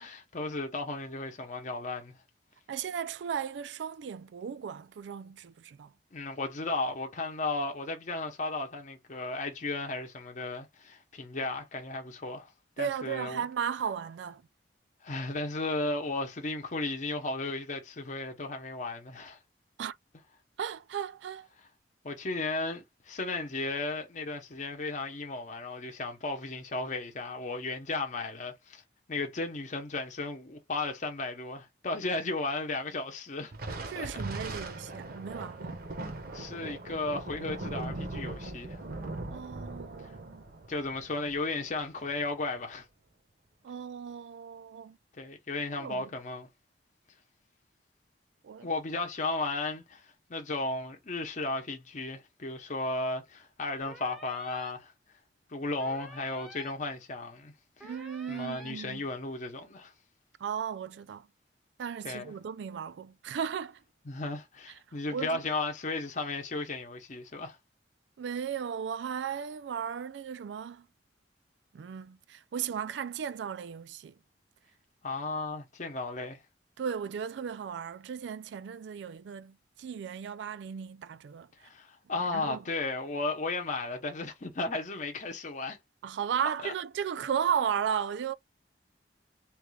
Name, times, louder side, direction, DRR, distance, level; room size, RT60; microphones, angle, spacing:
voice 1, 0.0-2.2 6.1-12.5 12.8-13.4 15.0-19.4 22.0-28.8 29.1-33.5 33.9-34.1 36.3-38.8 40.7-42.8 45.2-46.5 48.6-54.9 55.5-57.5 57.8-57.9 58.3-59.9 62.0-62.3 64.1-67.6 75.0-76.4 81.6-85.8 86.6-86.7, left 3 dB, 45° left, 0.8 m, -35 dB
voice 2, 2.7-5.9 12.8-14.4 19.8-20.0 20.6-21.5 33.9-35.8 39.3-40.4 43.6-45.0 45.8-46.1 48.4-48.7 57.8-59.0 60.4-61.3 61.8-63.8 65.1-65.4 68.2-70.9 71.7-74.1 76.8-81.5 82.3-82.6 86.0-88.3, right 7 dB, 85° right, 0.3 m, -35 dB
Thunder, 33.5-42.3, right 2 dB, 55° right, 0.8 m, -40 dB
sound 1, 53.8-54.7 55.8-56.7 57.8-58.7, right 1 dB, ahead, 0.6 m, -49 dB
3.1 x 2.3 x 3.2 m
head